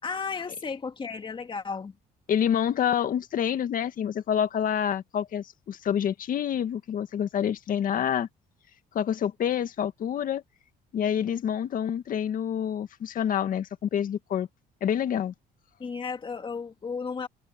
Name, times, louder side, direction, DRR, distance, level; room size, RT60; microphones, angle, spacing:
voice 1, 0.0-1.9 15.8-17.3, left 5 dB, 30° left, 2.5 m, -34 dB
voice 2, 2.3-8.3 8.9-10.4 10.9-14.5 14.8-15.3, left 9 dB, 55° left, 1.9 m, -27 dB
cardioid pair, 110°, 17 cm